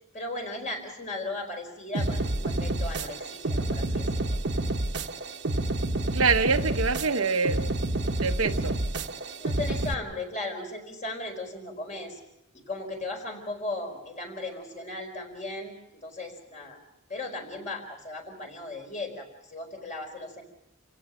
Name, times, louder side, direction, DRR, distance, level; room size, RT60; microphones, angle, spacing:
voice 1, 0.1-4.4 9.4-12.2 12.5-16.8 17.1-20.4, left 2 dB, 35° left, 3 dB, 4.7 m, -37 dB
sound 1, 1.9-9.9, right 2 dB, 60° right, 1.2 m, -29 dB
voice 2, 6.1-7.7 8.2-8.8, right 4 dB, 85° right, 6 dB, 1.1 m, -25 dB
28.5 x 16.5 x 6.3 m, 0.82 s
head